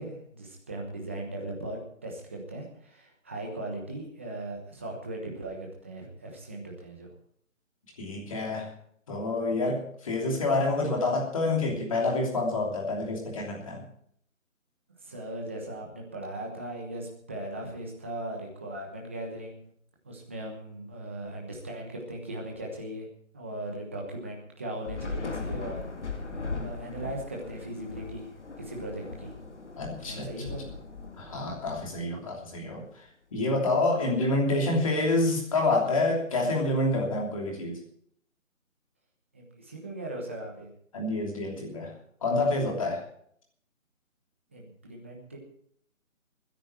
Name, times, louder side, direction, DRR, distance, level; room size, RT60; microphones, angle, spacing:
voice 1, 0.0-7.1 15.0-19.6 20.0-23.1 23.3-26.2 26.5-28.3 28.6-29.3 30.0-30.7 39.3-40.7 44.5-45.4, right 1 dB, 10° right, -1 dB, 1.1 m, -38 dB
voice 2, 8.0-8.7 9.1-13.8 29.8-30.3 31.2-32.8 33.3-37.8 40.9-41.9 42.2-43.0, left 2 dB, 25° left, 0 dB, 3.0 m, -27 dB
Thunder / Rain, 24.8-32.4, left 3 dB, 55° left, 2.8 m, -38 dB
21.0 x 10.0 x 4.5 m, 0.64 s
figure-of-eight pair, 170°, 41 cm